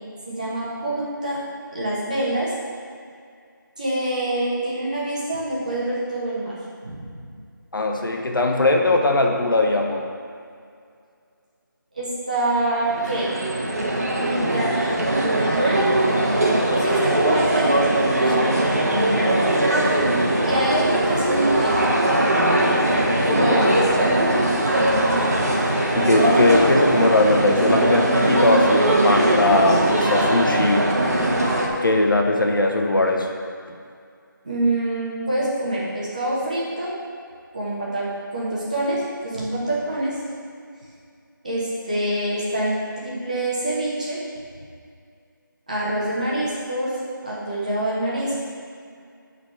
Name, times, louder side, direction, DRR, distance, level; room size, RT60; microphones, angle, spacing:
voice 1, 0.3-1.4 1.7-2.5 3.8-6.5 6.8-7.0 11.9-13.3 14.2-16.2 16.8-17.7 18.2-18.6 20.4-21.9 24.7-25.3 34.4-36.9 37.5-40.2 41.4-42.8 43.0-44.2 45.7-47.0 47.2-48.4, right 1 dB, 20° right, -8 dB, 1.2 m, -26 dB
voice 2, 7.7-10.0 18.2-18.4 18.9-19.5 23.3-24.0 25.9-30.9 31.8-33.3, left 2 dB, 75° left, 1 dB, 1.2 m, -20 dB
sound 1, 12.8-31.7, right 1 dB, 45° right, 1.2 m, -20 dB
9.7 x 4.1 x 5.8 m, 2.3 s
figure-of-eight pair, 180°, 11 cm